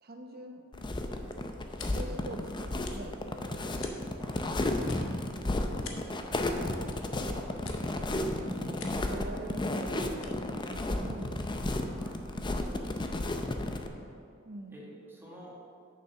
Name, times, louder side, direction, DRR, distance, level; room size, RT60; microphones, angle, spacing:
voice 1, 0.0-0.6 1.8-3.8 6.6-7.4 7.9-11.9 14.4-14.8, right 1 dB, 50° right, 4 dB, 0.8 m, -45 dB
sound 1, 0.7-11.9, left 5 dB, 70° left, 0.9 m, -53 dB
sound 2, 0.7-13.9, left 1 dB, 25° left, 0.5 m, -33 dB
voice 2, 13.2-14.1 14.7-15.6, equal, 10° right, -5 dB, 1.7 m, -51 dB
6.8 x 6.5 x 5.9 m, 2.5 s
head